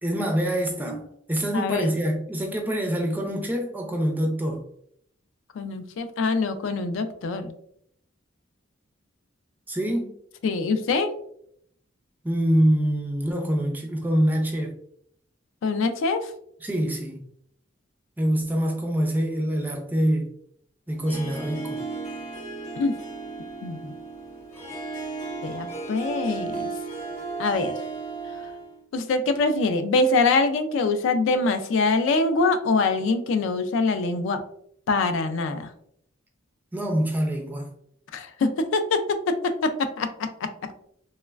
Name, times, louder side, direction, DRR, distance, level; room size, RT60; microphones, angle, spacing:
voice 1, 0.0-1.0 1.3-4.6 9.7-10.1 12.2-14.7 16.6-17.2 18.2-20.3 20.9-21.8 36.7-37.7, equal, 10° right, 0.3 m, -25 dB
voice 2, 1.5-1.9 5.6-7.5 10.4-11.1 15.6-16.3 22.8-23.0 23.6-24.0 25.4-26.7 27.4-27.7 28.9-34.4 34.9-35.7 38.1-39.7 40.0-40.5, left 3 dB, 75° left, 0.3 m, -24 dB
Harp, 20.9-28.8, right 3 dB, 35° left, 0.8 m, -35 dB
3.1 x 2.1 x 2.3 m
head